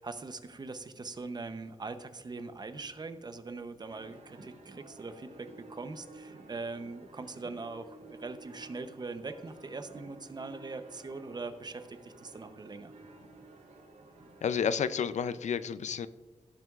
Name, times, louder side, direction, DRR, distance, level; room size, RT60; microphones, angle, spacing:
voice 1, 0.0-12.9, right 3 dB, 35° right, 9 dB, 0.7 m, -42 dB
sound 1, 3.9-14.8, right 2 dB, 70° right, 3.3 m, -53 dB
voice 2, 14.4-16.1, left 7 dB, 70° left, 14 dB, 0.4 m, -30 dB
16.5 x 7.7 x 2.4 m, 1.3 s
wide cardioid pair, 145°, 12 cm